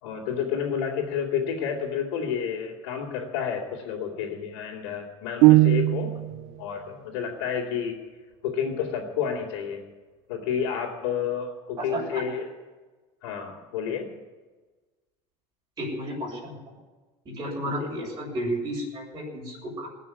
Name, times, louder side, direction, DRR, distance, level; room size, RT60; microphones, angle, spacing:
voice 1, 0.0-6.1 6.6-7.9 8.4-9.8 10.3-12.5 13.2-14.1 17.6-17.7, left 7 dB, 85° left, -5 dB, 3.1 m, -30 dB
sound 1, 5.4-6.4, right 18 dB, 65° right, 0.4 m, -18 dB
voice 2, 11.9-12.3 15.8-16.5 17.2-19.9, equal, 25° right, -6 dB, 6.9 m, -32 dB
19.5 x 6.9 x 9.7 m, 1.3 s
supercardioid pair, 110°, 14 cm